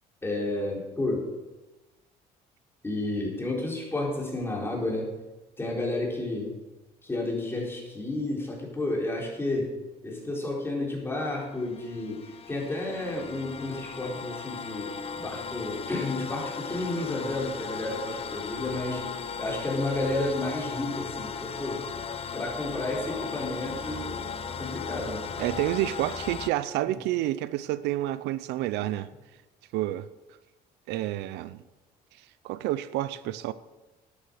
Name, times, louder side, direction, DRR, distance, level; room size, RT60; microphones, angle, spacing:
voice 1, 0.2-1.3 2.8-5.1 5.6-6.5 7.0-9.7 10.0-19.1 19.4-21.8 22.3-25.3, left 2 dB, 15° left, -1 dB, 4.2 m, -31 dB
sound 1, 11.3-26.5, left 6 dB, 35° left, 0.8 m, -37 dB
voice 2, 25.4-29.1 29.7-30.1 30.9-31.6 32.2-33.5, right 14 dB, 90° right, 15 dB, 0.6 m, -29 dB
12.0 x 9.7 x 6.5 m, 1.1 s
cardioid pair, 110°, 17 cm